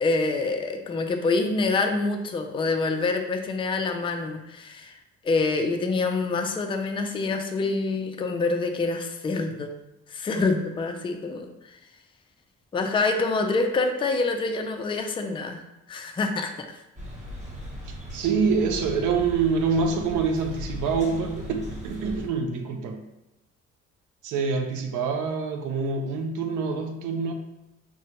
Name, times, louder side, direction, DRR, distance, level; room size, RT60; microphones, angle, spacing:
voice 1, 0.0-5.0 5.2-9.7 10.1-11.8 12.7-15.6 15.9-16.5, left 3 dB, 20° left, 4 dB, 0.3 m, -26 dB
sound 1, 17.0-22.3, left 1 dB, 25° right, 1.0 m, -38 dB
voice 2, 17.9-23.0 24.2-27.3, right 5 dB, 80° right, 4 dB, 0.5 m, -26 dB
3.7 x 2.1 x 2.9 m, 0.95 s
cardioid pair, 90°, 30 cm